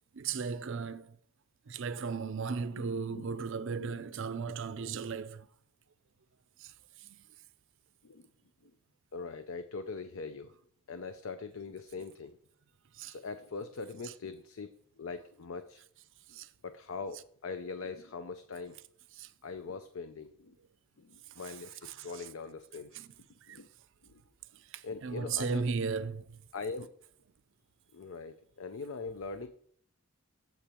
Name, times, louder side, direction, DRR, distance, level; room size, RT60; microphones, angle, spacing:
voice 1, 0.1-1.2 1.7-5.5 6.6-6.7 7.0-7.2 13.0-13.2 14.0-14.1 16.3-16.5 19.2-19.3 21.4-22.3 22.9-23.1 23.5-23.6 24.7-26.4, right 5 dB, 55° right, 0.5 m, -36 dB
voice 2, 2.8-3.3 3.8-3.9 4.8-4.9 8.0-8.3 8.6-8.7 9.1-10.5 10.9-12.4 13.1-14.7 15.0-15.8 16.3-16.4 16.6-18.8 19.4-20.6 21.0-23.0 23.5-23.7 24.0-24.2 24.8-25.7 26.5-26.9 27.9-29.5, left 4 dB, 65° left, 0.5 m, -42 dB
7.8 x 4.4 x 6.8 m
head